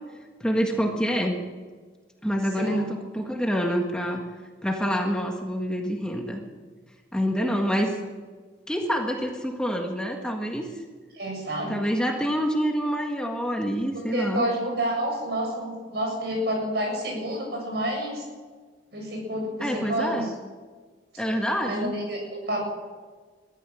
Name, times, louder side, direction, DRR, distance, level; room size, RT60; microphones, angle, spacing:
voice 1, 0.4-1.4 2.2-4.2 4.6-6.4 7.1-7.9 8.7-10.7 11.7-14.4 19.6-20.3 21.2-21.9, equal, 5° left, 1 dB, 1.7 m, -26 dB
voice 2, 11.2-11.9 14.1-18.2 18.9-20.3 21.6-22.7, right 1 dB, 60° right, 1 dB, 7.4 m, -29 dB
23.0 x 15.0 x 7.8 m, 1.5 s
head